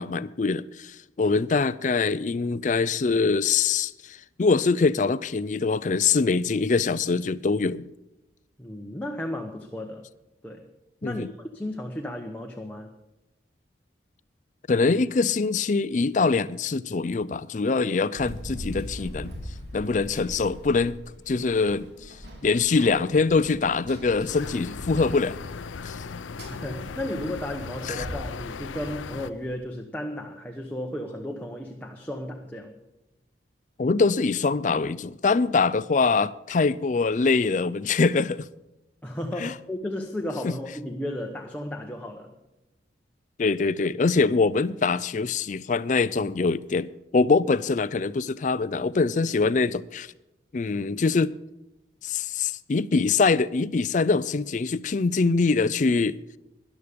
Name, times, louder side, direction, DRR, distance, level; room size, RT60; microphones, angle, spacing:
voice 1, 0.0-7.9 11.0-11.3 14.7-19.3 19.7-21.0 21.3-22.1 22.4-25.4 25.8-26.0 27.9-28.1 33.8-38.5 39.4-39.5 40.4-40.5 43.4-50.1 50.5-51.3 52.0-56.2, left 4 dB, 40° left, 0.4 m, -24 dB
voice 2, 8.6-10.1 10.4-10.7 11.0-12.9 26.5-32.8 39.0-42.3, left 1 dB, 10° left, 0.9 m, -34 dB
Run, 18.2-29.5, equal, 65° right, 3.3 m, -41 dB
sound 1, 24.3-29.3, left 5 dB, 90° left, 0.5 m, -37 dB
13.5 x 11.0 x 5.1 m
head